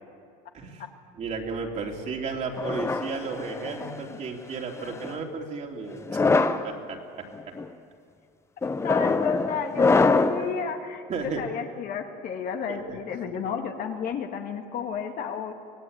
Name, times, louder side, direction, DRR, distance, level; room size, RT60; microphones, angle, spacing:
voice 1, 1.2-7.3 10.4-10.6 11.1-11.4 12.7-13.0 13.3-13.4, right 4 dB, 35° right, 1 dB, 3.1 m, -34 dB
sound 1, 2.6-4.0 4.8-5.2 6.0-6.7 7.3-7.7 8.6-10.5, left 3 dB, 15° left, 0.8 m, -24 dB
voice 2, 8.6-15.5, left 7 dB, 45° left, 4 dB, 2.0 m, -32 dB
25.5 x 18.0 x 8.8 m, 2.3 s
cardioid pair, 140°, 20 cm